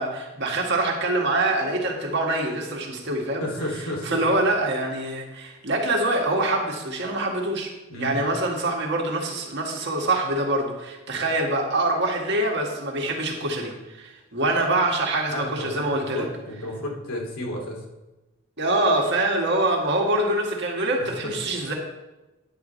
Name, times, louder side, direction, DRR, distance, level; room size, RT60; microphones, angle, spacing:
voice 1, 0.0-3.4 4.0-7.7 8.0-16.3 18.6-21.7, right 2 dB, 55° right, 0 dB, 1.8 m, -25 dB
voice 2, 3.4-4.2 7.9-8.2 15.3-17.8 21.0-21.5, left 1 dB, 90° left, -1 dB, 2.6 m, -32 dB
10.0 x 4.8 x 6.7 m, 1.0 s
head